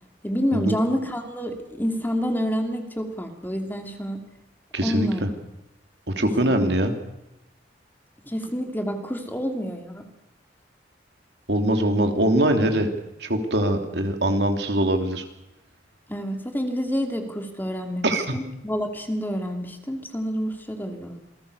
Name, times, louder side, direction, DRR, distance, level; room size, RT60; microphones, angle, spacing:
voice 1, 0.2-4.2 4.8-5.3 6.2-6.7 8.2-10.1 16.1-21.2, equal, 10° left, 5 dB, 2.6 m, -28 dB
voice 2, 4.7-5.3 6.1-6.9 11.5-12.9 13.2-15.2 18.0-18.3, right 1 dB, 70° right, 5 dB, 3.2 m, -22 dB
27.5 x 19.5 x 6.8 m, 0.91 s
head